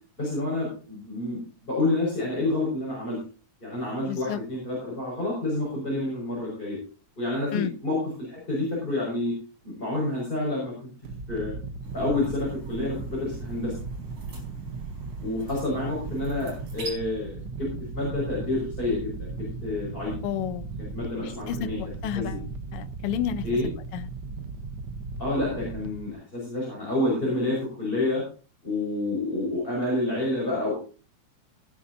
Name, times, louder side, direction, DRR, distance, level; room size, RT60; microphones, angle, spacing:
voice 1, 0.2-3.2 3.6-6.8 7.2-9.3 9.6-10.9 11.3-11.5 11.9-13.7 15.2-17.7 17.9-20.1 20.8-21.8 22.1-22.4 23.4-23.7 25.2-28.2 28.6-30.8, left 2 dB, 15° left, -5 dB, 6.1 m, -28 dB
voice 2, 4.1-4.4 7.5-7.7 20.2-20.7 21.2-21.7 22.0-22.4 22.7-23.4 23.9-24.0, left 10 dB, 65° left, 11 dB, 1.5 m, -30 dB
sound 1, 11.0-26.1, right 4 dB, 60° right, 1.1 m, -37 dB
sound 2, 11.8-16.9, right 2 dB, 45° right, 5.7 m, -46 dB
18.0 x 11.0 x 2.8 m, 0.36 s
omnidirectional pair, 3.3 m